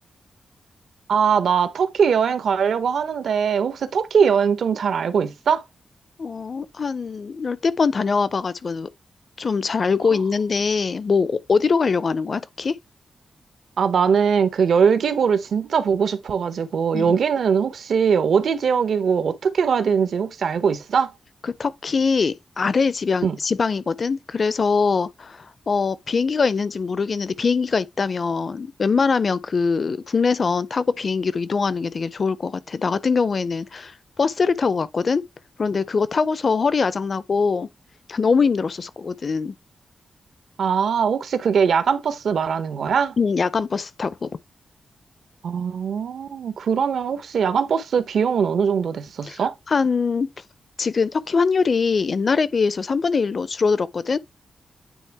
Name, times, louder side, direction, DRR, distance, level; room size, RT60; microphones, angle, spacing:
voice 1, 1.1-5.6 10.1-10.2 13.8-21.1 23.2-23.4 40.6-43.2 45.4-49.5, right 6 dB, 75° right, 0.9 m, -21 dB
voice 2, 6.2-8.9 9.4-12.7 16.9-17.2 21.4-35.2 35.6-37.7 38.1-39.5 43.2-44.3 49.3-49.4 49.7-50.3 50.8-54.2, left 5 dB, 45° left, 0.4 m, -22 dB
9.2 x 3.5 x 3.4 m
wide cardioid pair, 140°, 0 cm